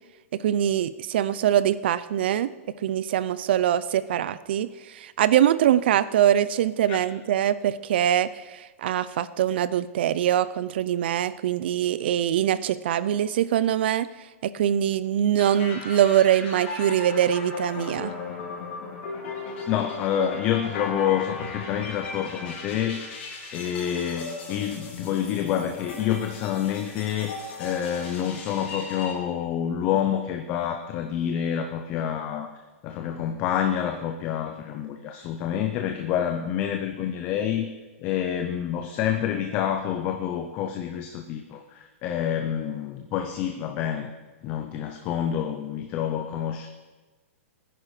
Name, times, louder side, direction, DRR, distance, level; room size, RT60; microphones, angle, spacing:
voice 1, 0.3-2.5 2.8-4.7 4.9-14.1 14.4-18.1, right 10 dB, 45° right, 16 dB, 0.5 m, -23 dB
sound 1, 15.4-29.1, left 3 dB, 45° left, 4.2 m, -37 dB
voice 2, 19.7-23.1 23.5-32.5 32.8-37.7 38.0-44.1 44.4-46.7, left 9 dB, 20° left, 5 dB, 0.6 m, -28 dB
17.0 x 10.0 x 4.9 m, 1.3 s
hypercardioid pair, 175°, 8 cm